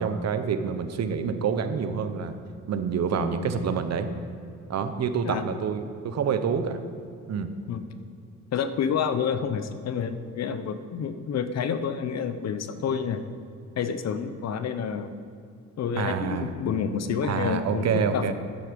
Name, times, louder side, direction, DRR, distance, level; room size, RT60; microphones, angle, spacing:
voice 1, 0.0-2.3 2.7-4.1 4.7-6.8 7.3-7.5 15.9-16.5 17.2-18.3, right 6 dB, 60° right, 9 dB, 1.0 m, -27 dB
voice 2, 8.5-13.2 13.8-15.1 15.8-18.3, left 7 dB, 60° left, 11 dB, 0.9 m, -29 dB
12.0 x 8.2 x 5.3 m, 2.5 s
cardioid pair, 90°, 30 cm